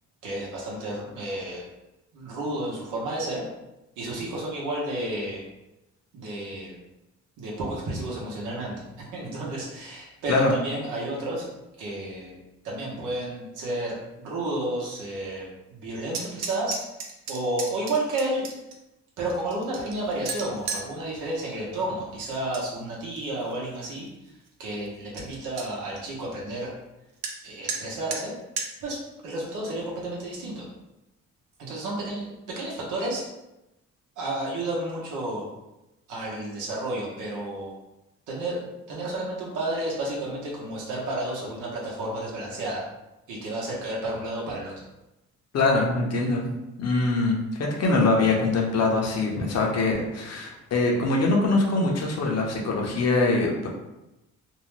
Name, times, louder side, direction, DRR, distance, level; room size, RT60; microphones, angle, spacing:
voice 1, 0.2-1.6 2.1-3.4 4.0-5.4 6.1-6.8 7.4-8.8 9.1-11.4 11.8-16.8 17.3-18.4 19.2-24.1 24.6-26.7 27.4-28.3 28.8-29.0 29.2-30.7 31.6-33.3 34.2-35.4 36.1-37.7 38.3-42.8 43.3-44.7, right 1 dB, 85° right, -4 dB, 0.8 m, -31 dB
sound 1, 16.1-18.7 19.3-20.9 22.2-22.7 23.0-23.5 24.0-24.1 24.5-24.6 24.9-25.0 25.2-25.7 27.2-27.3 27.7-27.8 28.1-28.2 28.6-28.7, right 5 dB, 60° right, 0.6 m, -34 dB
voice 2, 45.5-46.5 46.8-53.7, left 3 dB, 55° left, 0 dB, 0.8 m, -23 dB
2.7 x 2.1 x 3.1 m, 0.95 s
cardioid pair, 90°, 30 cm